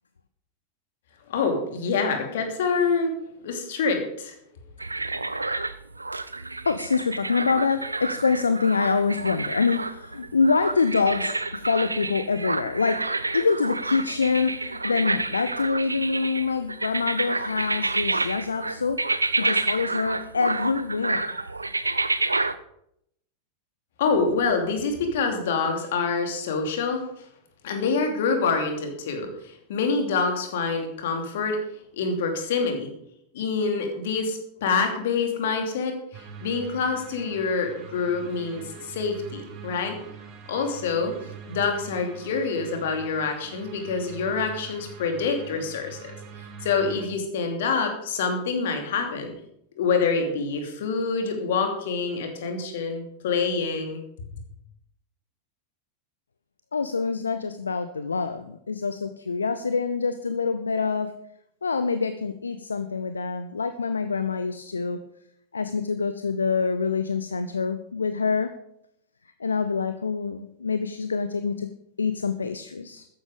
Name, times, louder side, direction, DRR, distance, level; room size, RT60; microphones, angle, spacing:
voice 1, 1.3-3.1 3.4-4.3 24.0-27.0 27.6-31.6 31.9-32.9 33.3-40.0 40.5-41.2 41.5-46.1 46.6-49.3 49.8-54.0, left 4 dB, 55° left, 4 dB, 2.9 m, -26 dB
sound 1, 4.8-22.6, right 2 dB, 80° right, 0.6 m, -29 dB
voice 2, 6.6-13.0 13.3-19.0 19.4-21.4 56.7-61.1 61.6-65.0 65.5-68.5 69.4-71.7 72.0-73.1, left 5 dB, 75° left, 11 dB, 0.7 m, -26 dB
sound 2, 36.1-47.1, right 7 dB, 35° right, 2.1 m, -43 dB
13.5 x 10.5 x 5.2 m, 0.76 s
figure-of-eight pair, 90°, 0 cm